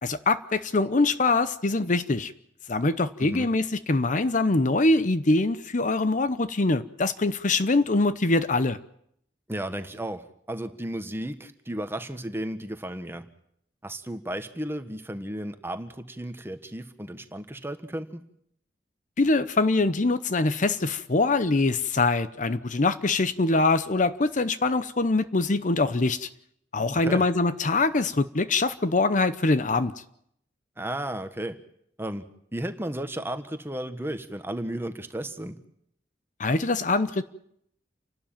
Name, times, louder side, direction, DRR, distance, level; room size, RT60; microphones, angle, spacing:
voice 1, 0.0-2.3 2.7-8.8 19.2-26.3 26.7-29.9 36.4-37.2, left 3 dB, 45° left, 0.8 m, -23 dB
voice 2, 9.5-13.3 13.8-18.2 26.9-27.3 30.8-31.6 32.0-32.2 32.5-35.6, right 1 dB, 15° right, 1.4 m, -34 dB
29.0 x 12.5 x 9.0 m
head